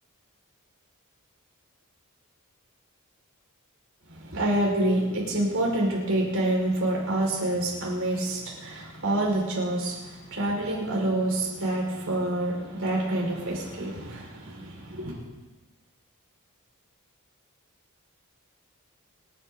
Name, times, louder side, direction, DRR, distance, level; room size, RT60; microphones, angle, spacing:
voice 1, 4.1-15.2, right 1 dB, 65° right, -2 dB, 5.2 m, -27 dB
28.5 x 10.0 x 4.0 m, 1.2 s
head